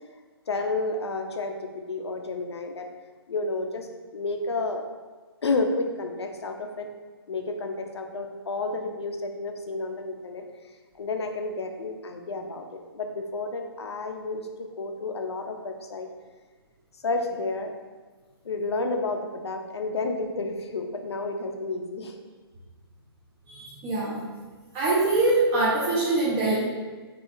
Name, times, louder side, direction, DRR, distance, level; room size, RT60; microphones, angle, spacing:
voice 1, 0.5-1.6 1.9-2.9 3.3-4.8 5.4-6.9 7.3-10.4 10.9-12.6 12.9-16.1 17.0-17.7 18.4-22.2, left 3 dB, 80° left, 4 dB, 0.4 m, -31 dB
voice 2, 23.5-24.2 24.7-26.6, right 2 dB, 20° right, -8 dB, 0.3 m, -23 dB
2.9 x 2.3 x 2.5 m, 1.4 s
figure-of-eight pair, 135°, 14 cm